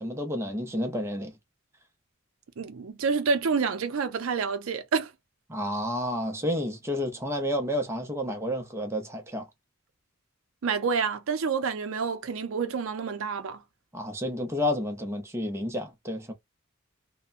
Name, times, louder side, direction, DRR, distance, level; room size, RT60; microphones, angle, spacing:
voice 1, 0.0-1.3 5.5-9.5 13.9-16.3, left 1 dB, 15° right, 0.6 m, -30 dB
voice 2, 2.6-5.1 10.6-13.6, right 5 dB, 70° right, 0.5 m, -28 dB
2.8 x 2.1 x 2.4 m
head